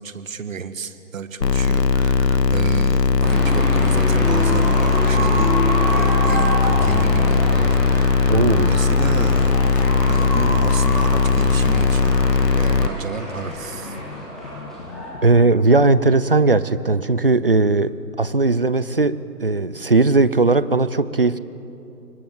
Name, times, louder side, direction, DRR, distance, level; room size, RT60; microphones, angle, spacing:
voice 1, 0.0-5.6 5.9-9.7 10.1-14.0, right 5 dB, 50° right, 11 dB, 1.6 m, -31 dB
sound 1, 1.4-12.9, left 5 dB, 75° left, 1.3 m, -18 dB
sound 2, 3.2-15.1, equal, ahead, 4.0 m, -27 dB
voice 2, 8.3-8.7 15.2-17.9 18.2-21.4, right 3 dB, 35° right, 16 dB, 0.5 m, -17 dB
sound 3, 9.0-16.6, left 4 dB, 40° left, 2.0 m, -37 dB
30.0 x 23.0 x 7.8 m, 3.0 s
hypercardioid pair, 165°, 50 cm